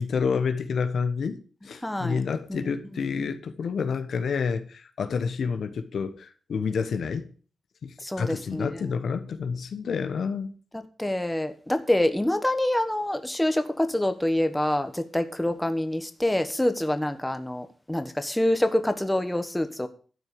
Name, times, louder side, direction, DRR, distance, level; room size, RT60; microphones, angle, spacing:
voice 1, 0.0-1.4 1.6-7.3 7.8-10.5, left 5 dB, 75° left, 1.2 m, -29 dB
voice 2, 1.8-2.2 2.5-2.6 8.0-8.9 10.7-19.9, left 1 dB, 10° left, 1.3 m, -26 dB
12.5 x 4.6 x 8.6 m
cardioid pair, 70°, 0 cm